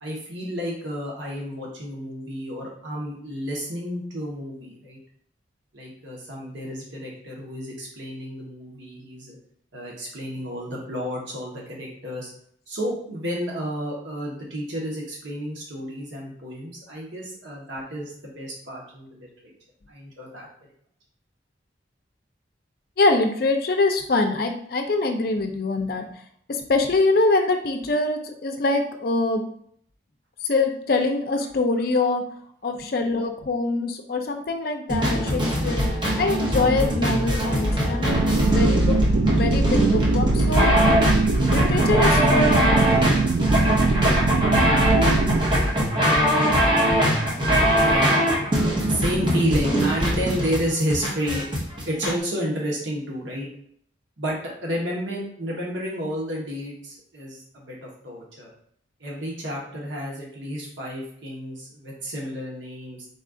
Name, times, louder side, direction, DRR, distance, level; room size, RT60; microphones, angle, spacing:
voice 1, 0.0-5.0 5.7-9.4 9.7-12.3 12.7-19.5 19.9-20.5 32.7-32.9 47.8-48.1 48.9-53.5 54.2-58.5 59.0-63.1, equal, 85° right, -3 dB, 1.1 m, -31 dB
voice 2, 23.0-26.2 26.5-29.5 30.4-32.2 32.6-35.8 36.2-40.7 41.5-42.9, left 3 dB, 50° left, 4 dB, 0.5 m, -24 dB
sound 1, 34.9-52.1, equal, 25° right, 0.8 m, -22 dB
sound 2, 38.1-45.4, right 3 dB, 65° right, 0.4 m, -21 dB
4.1 x 2.4 x 3.7 m, 0.63 s
head